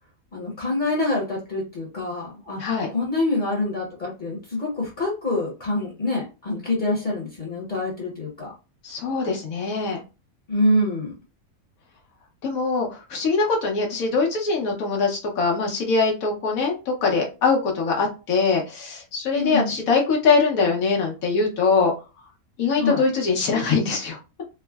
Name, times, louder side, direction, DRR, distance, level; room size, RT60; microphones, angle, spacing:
voice 1, 0.3-2.6 2.9-8.5 10.5-11.1 19.3-19.8 22.8-23.0, left 2 dB, 40° left, -3 dB, 0.9 m, -25 dB
voice 2, 8.8-10.0 12.4-21.9 22.6-24.2, left 4 dB, 80° left, 0 dB, 1.3 m, -22 dB
3.5 x 2.0 x 2.2 m, 0.30 s
omnidirectional pair, 1.5 m